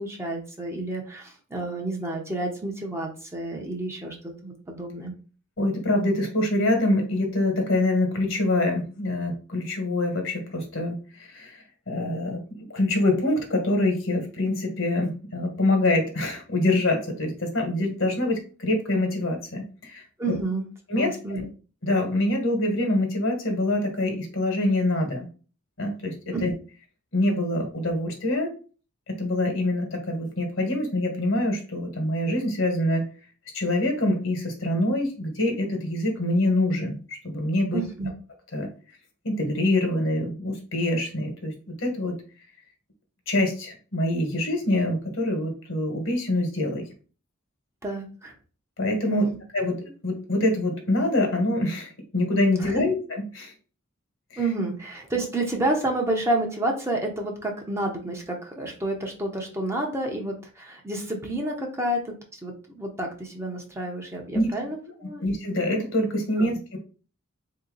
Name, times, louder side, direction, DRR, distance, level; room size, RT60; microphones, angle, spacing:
voice 1, 0.0-4.1 4.4-5.1 20.2-20.7 20.9-21.4 26.3-26.4 37.7-38.1 47.8-48.3 49.1-49.2 52.6-52.8 54.4-65.2 66.4-66.5, right 2 dB, 15° right, 0 dB, 0.8 m, -30 dB
voice 2, 5.6-11.6 11.9-20.0 20.9-21.4 21.8-25.3 25.8-26.5 27.1-28.5 29.1-33.1 33.5-37.8 38.5-38.7 39.2-42.2 43.3-46.9 48.8-49.3 49.5-53.5 54.3-54.4 64.3-64.5 65.2-66.8, left 1 dB, 65° left, 3 dB, 1.4 m, -25 dB
3.9 x 2.8 x 3.9 m, 0.38 s
head